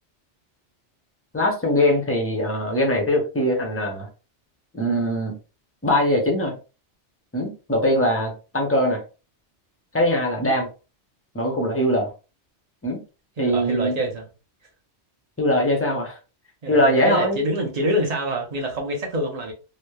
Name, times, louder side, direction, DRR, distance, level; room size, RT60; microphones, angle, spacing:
voice 1, 1.3-4.1 4.7-5.4 5.8-6.5 7.3-9.0 9.9-10.7 11.3-12.1 12.8-13.0 13.4-14.0 15.4-16.2 16.7-17.4, left 1 dB, 20° left, 0.4 m, -21 dB
voice 2, 13.4-14.3 16.6-19.5, right 1 dB, 40° right, 0.6 m, -26 dB
3.0 x 2.0 x 2.2 m
omnidirectional pair, 1.2 m